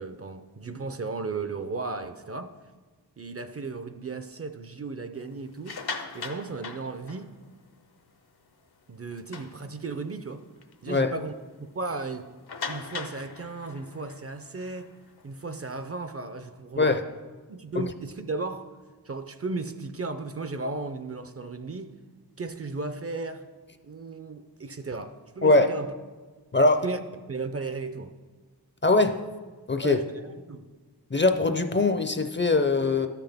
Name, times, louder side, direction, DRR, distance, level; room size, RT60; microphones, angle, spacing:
voice 1, 0.0-2.5 3.2-5.8 6.1-7.3 8.9-10.4 10.8-12.3 12.7-14.9 15.2-17.0 17.5-18.7 19.0-21.9 22.4-23.5 23.8-25.9 26.8-27.0 27.3-28.1 29.8-30.0 30.5-30.7, right 3 dB, 35° right, 9 dB, 0.4 m, -35 dB
sound 1, 5.5-7.6 8.1-8.2 8.6-8.7 9.1-10.1 10.6-10.7 11.1-11.2 12.5-15.8, left 5 dB, 70° left, 0.7 m, -40 dB
voice 2, 26.5-26.9 28.8-29.2 29.7-30.0 31.1-33.1, left 3 dB, 30° left, 8 dB, 0.4 m, -22 dB
12.5 x 5.8 x 3.4 m, 1.4 s
wide cardioid pair, 75°, 39 cm